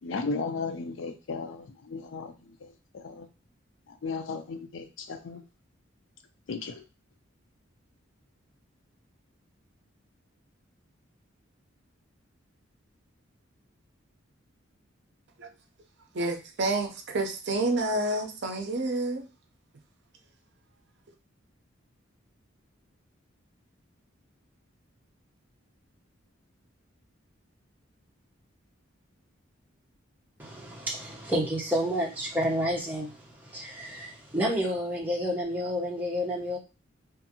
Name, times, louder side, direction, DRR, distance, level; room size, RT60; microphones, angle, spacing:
voice 1, 0.0-3.3 3.9-5.4 6.5-6.8, left 4 dB, 70° left, 7 dB, 0.4 m, -35 dB
voice 2, 16.1-19.3, right 2 dB, 55° right, 4 dB, 0.5 m, -29 dB
voice 3, 30.4-36.6, equal, 10° right, -3 dB, 0.7 m, -30 dB
2.5 x 2.5 x 2.7 m, 0.30 s
head